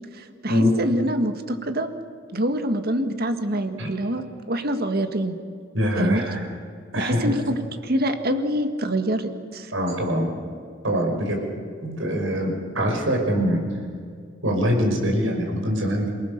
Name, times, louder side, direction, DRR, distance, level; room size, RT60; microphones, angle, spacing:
voice 1, 0.1-1.9 2.3-5.4 6.0-6.2 7.0-9.7, right 1 dB, 55° right, 8 dB, 1.7 m, -25 dB
voice 2, 5.7-6.5 6.9-7.3 9.7-10.3 10.8-11.4 11.8-13.6 14.4-16.1, equal, 80° right, 2 dB, 5.5 m, -23 dB
28.0 x 19.0 x 6.7 m, 2.1 s
head